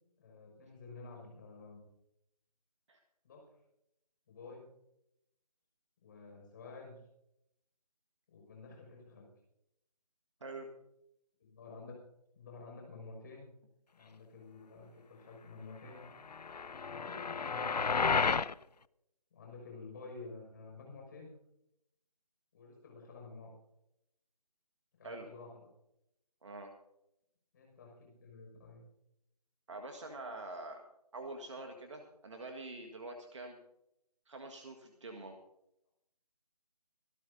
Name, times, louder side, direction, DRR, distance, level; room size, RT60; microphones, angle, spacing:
voice 1, 0.2-1.9 3.2-3.6 4.3-4.7 6.0-7.0 8.3-9.3 11.4-11.9 12.3-13.5 13.9-16.0 16.9-18.4 19.3-21.3 22.5-23.5 25.0-25.7 27.5-28.8, left 3 dB, 30° left, 0 dB, 5.9 m, -51 dB
sound 1, 16.3-18.5, left 5 dB, 75° left, 0.5 m, -32 dB
voice 2, 26.4-26.7 29.7-30.8 31.1-33.6 34.3-35.4, right 2 dB, 45° right, 3 dB, 1.7 m, -45 dB
25.5 x 12.5 x 2.7 m, 0.80 s
figure-of-eight pair, 155°, 21 cm